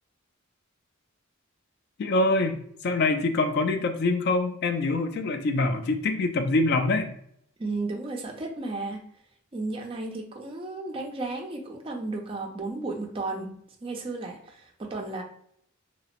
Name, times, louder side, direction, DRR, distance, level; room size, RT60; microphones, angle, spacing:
voice 1, 2.0-7.2, left 2 dB, 50° left, 7 dB, 0.3 m, -25 dB
voice 2, 7.6-9.0 9.5-13.5 13.8-15.2, right 2 dB, 25° right, 1 dB, 0.4 m, -33 dB
2.7 x 2.0 x 2.9 m, 0.67 s
head